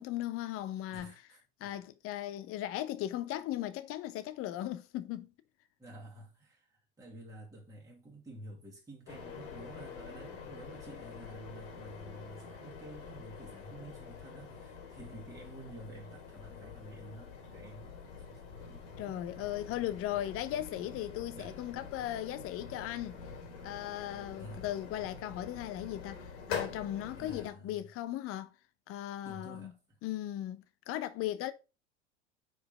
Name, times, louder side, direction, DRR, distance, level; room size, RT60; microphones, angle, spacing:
voice 1, 0.0-1.1 1.6-5.3 19.0-23.2 23.6-28.5 28.9-29.7 30.0-31.5, left 13 dB, 40° left, 0.9 m, -37 dB
voice 2, 0.9-1.7 5.8-18.0 18.7-19.4 21.3-21.6 24.4-24.6 27.1-27.9 29.2-30.0, right 1 dB, 10° right, 2.1 m, -50 dB
sound 1, 9.1-27.5, left 6 dB, 60° left, 2.5 m, -46 dB
4.9 x 4.5 x 5.1 m
hypercardioid pair, 95°, 35 cm